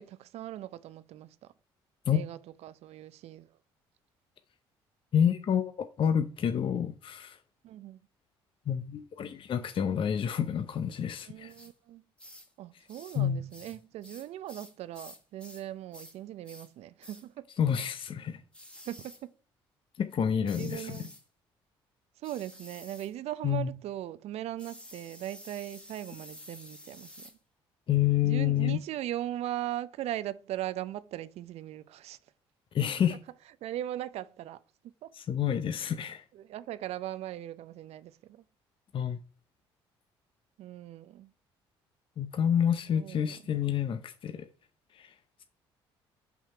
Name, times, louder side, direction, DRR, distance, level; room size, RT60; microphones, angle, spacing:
voice 1, 0.0-1.5 2.1-3.5 7.6-8.0 11.3-12.0 12.6-17.5 18.9-19.1 20.4-21.1 22.2-27.3 28.2-32.2 33.1-33.2 33.6-34.6 35.0-35.1 36.3-38.4 40.6-41.3 42.9-43.4, right 13 dB, 65° right, 0.5 m, -39 dB
voice 2, 5.1-7.4 8.7-11.5 13.1-13.4 17.6-18.4 20.0-21.0 23.4-23.7 27.9-28.8 32.7-33.2 35.1-36.2 38.9-39.2 42.2-44.5 44.9-45.1, left 9 dB, 50° left, 0.7 m, -28 dB
sound 1, 11.5-11.7 12.2-12.5 12.9-13.2 13.5-15.7 15.9-16.2 16.4-16.7 17.0-17.3 18.5-19.2 20.4-21.2 22.2-23.1 24.6-27.4, left 1 dB, 10° left, 1.7 m, -50 dB
6.0 x 5.7 x 4.4 m
supercardioid pair, 60°, 11 cm